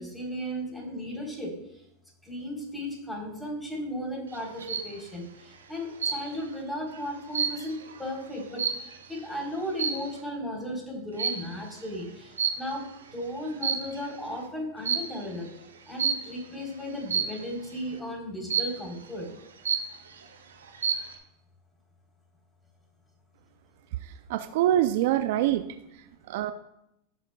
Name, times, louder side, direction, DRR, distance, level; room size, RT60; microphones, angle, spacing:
voice 1, 0.0-1.5 2.3-5.2 5.7-8.7 9.1-15.5 15.9-19.3, equal, 5° left, -1 dB, 3.7 m, -35 dB
sound 1, 4.3-4.9 6.0-6.5 6.9-9.2 9.7-10.2 11.2-11.6 12.4-13.0 13.5-14.1 14.8-15.2 16.0-16.4 17.1-17.5 18.5-19.0 19.4-19.5 19.6-20.2 20.6-21.1, right 6 dB, 85° right, 1.3 m, -30 dB
voice 2, 24.0-25.7 26.3-26.5, right 12 dB, 60° right, 11 dB, 0.4 m, -25 dB
15.5 x 7.2 x 2.3 m, 0.82 s
hypercardioid pair, 95°, 0 cm